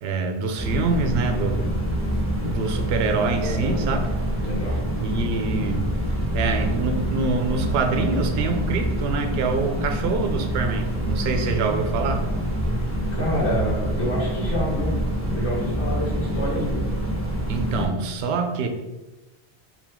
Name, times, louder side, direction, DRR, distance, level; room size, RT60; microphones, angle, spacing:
voice 1, 0.0-1.8 2.4-4.1 5.0-6.0 6.3-12.2 17.5-18.7, right 4 dB, 75° right, 5 dB, 0.8 m, -25 dB
sound 1, 0.6-17.9, equal, 15° right, 0.6 m, -26 dB
voice 2, 3.4-3.9 4.4-4.8 13.1-14.9 15.3-16.8, equal, 85° left, -7 dB, 1.6 m, -27 dB
5.1 x 2.8 x 3.6 m, 1.1 s
omnidirectional pair, 1.1 m